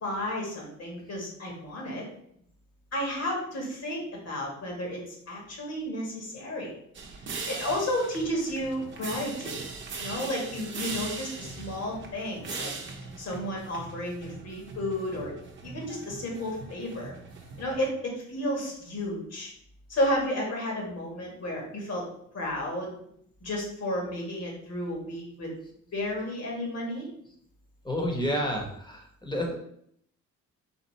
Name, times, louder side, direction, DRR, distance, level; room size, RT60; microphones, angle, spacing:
voice 1, 0.0-2.1 2.9-6.7 7.5-9.6 10.0-12.7 13.2-15.3 15.6-17.1 17.6-19.5 19.9-22.0 22.3-23.0 23.4-25.5 25.9-27.1, left 1 dB, 55° left, -1 dB, 1.9 m, -32 dB
sound 1, 6.9-17.9, right 4 dB, 40° right, 0.8 m, -40 dB
voice 2, 27.8-29.6, equal, 15° left, 1 dB, 1.2 m, -30 dB
4.2 x 2.8 x 4.1 m, 0.69 s
cardioid pair, 90°, 30 cm